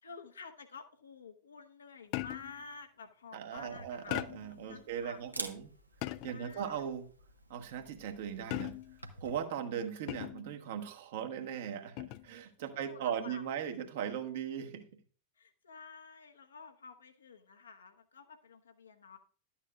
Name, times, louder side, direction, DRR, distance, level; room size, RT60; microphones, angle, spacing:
voice 1, 0.0-5.5 6.3-6.9 12.7-13.4 15.4-19.2, left 5 dB, 70° left, 7 dB, 0.9 m, -51 dB
sound 1, 2.1-2.6 4.1-4.6 6.0-6.5 8.5-9.1 10.1-10.5 12.0-12.3, left 17 dB, 45° left, 0.3 m, -39 dB
voice 2, 3.3-5.7 6.2-7.1 7.5-8.8 9.2-14.9, right 8 dB, 55° right, 5 dB, 1.1 m, -38 dB
Camera, 3.6-9.4, right 2 dB, 85° right, 0.8 m, -49 dB
11.5 x 8.7 x 2.3 m, 0.41 s
figure-of-eight pair, 90°, 0 cm